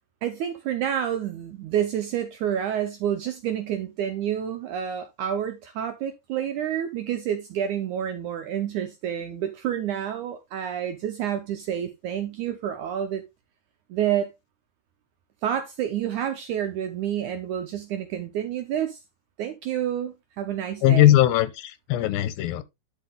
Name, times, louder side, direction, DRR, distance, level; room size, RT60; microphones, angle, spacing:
voice 1, 0.2-13.3 13.9-14.3 15.4-19.0 19.4-21.2, right 10 dB, 75° right, 1.8 m, -29 dB
voice 2, 20.8-22.6, left 13 dB, 80° left, 2.4 m, -19 dB
11.5 x 4.5 x 3.6 m
omnidirectional pair, 4.4 m